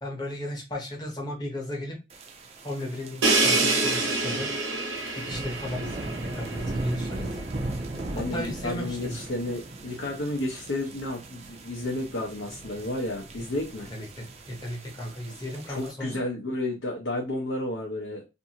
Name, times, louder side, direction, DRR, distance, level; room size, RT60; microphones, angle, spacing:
voice 1, 0.0-2.0 2.6-4.5 5.1-7.5 8.3-9.2 13.9-16.2, left 1 dB, 20° left, 0 dB, 0.8 m, -35 dB
sound 1, 2.1-15.9, right 2 dB, 35° right, 0.4 m, -38 dB
Crash cymbal, 3.2-7.0, right 3 dB, 80° right, 0.9 m, -26 dB
voice 2, 8.1-13.9 15.7-18.2, left 1 dB, 75° left, -1 dB, 0.7 m, -32 dB
2.6 x 2.5 x 2.8 m, 0.26 s
head